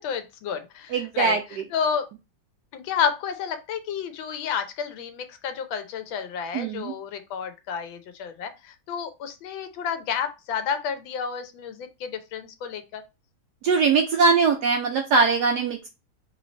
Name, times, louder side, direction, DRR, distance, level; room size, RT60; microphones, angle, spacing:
voice 1, 0.0-2.1 2.7-13.0, left 7 dB, 75° left, 1.4 m, -30 dB
voice 2, 0.9-1.4 6.5-6.9 13.6-15.9, right 4 dB, 75° right, 0.9 m, -21 dB
3.4 x 3.1 x 4.0 m
omnidirectional pair, 2.2 m